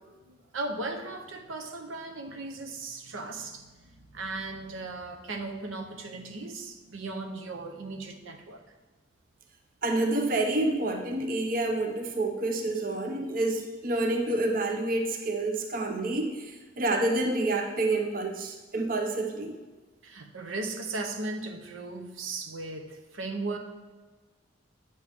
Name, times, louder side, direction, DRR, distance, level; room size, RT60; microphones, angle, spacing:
voice 1, 0.5-8.6 20.0-23.6, right 3 dB, 90° right, 5 dB, 0.8 m, -37 dB
voice 2, 9.8-19.5, right 2 dB, 45° right, 4 dB, 0.6 m, -28 dB
8.8 x 6.7 x 3.5 m, 1.3 s
head